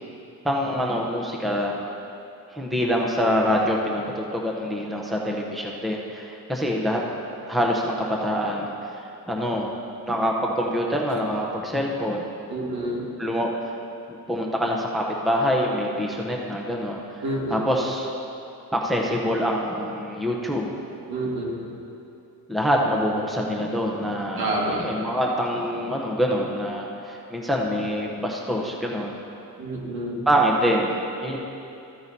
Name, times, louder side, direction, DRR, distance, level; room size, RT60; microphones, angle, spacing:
voice 1, 0.4-1.8 2.5-7.0 7.5-8.7 9.3-9.7 10.0-12.2 13.2-13.5 14.3-17.0 17.5-18.1 18.7-20.7 22.5-29.2 30.3-31.4, equal, ahead, -1 dB, 0.8 m, -25 dB
voice 2, 12.5-13.1 17.2-17.6 21.1-21.6 24.4-24.9 29.6-30.2, right 1 dB, 75° right, -3 dB, 2.0 m, -28 dB
14.0 x 9.5 x 2.8 m, 2.8 s
cardioid pair, 125°, 38 cm